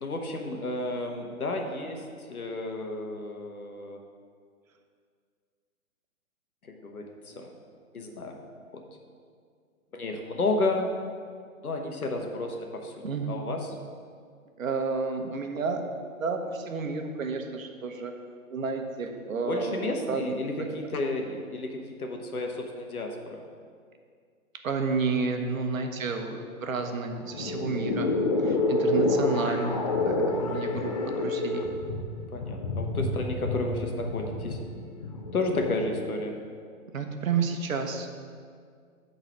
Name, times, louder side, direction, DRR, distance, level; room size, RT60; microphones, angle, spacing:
voice 1, 0.0-4.0 6.6-7.6 7.9-8.4 8.7-8.9 9.9-10.9 11.6-13.7 19.5-23.4 27.6-27.7 32.3-34.6 35.3-36.4, left 2 dB, 85° left, 3 dB, 1.3 m, -32 dB
voice 2, 13.0-13.4 14.6-15.9 16.2-18.1 18.5-20.2 24.6-28.2 28.4-29.8 30.0-31.7 36.9-38.1, right 4 dB, 70° right, 5 dB, 1.1 m, -31 dB
sound 1, 27.2-35.9, left 2 dB, 25° left, 0.5 m, -28 dB
9.0 x 4.0 x 6.2 m, 2.1 s
hypercardioid pair, 135°, 42 cm